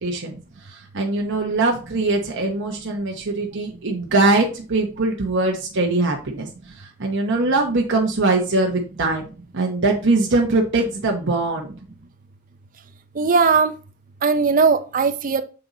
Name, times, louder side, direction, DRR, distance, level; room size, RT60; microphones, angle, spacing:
voice 1, 0.0-9.3 9.5-11.7, right 2 dB, 55° right, 0.9 m, -22 dB
voice 2, 13.2-13.7 14.2-15.4, right 5 dB, 35° right, 0.5 m, -18 dB
7.7 x 3.9 x 4.0 m
head